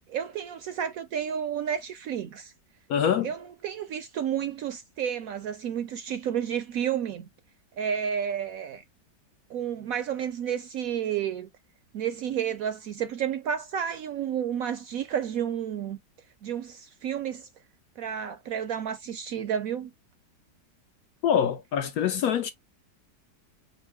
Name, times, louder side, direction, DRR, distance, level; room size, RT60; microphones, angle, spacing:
voice 1, 0.0-2.5 3.2-7.3 7.8-8.8 9.5-11.5 11.9-16.0 16.4-17.5 18.0-19.9, right 8 dB, 70° right, 0.8 m, -31 dB
voice 2, 2.9-3.3 21.2-22.5, left 8 dB, 70° left, 0.9 m, -25 dB
5.4 x 2.0 x 4.7 m
omnidirectional pair, 1.9 m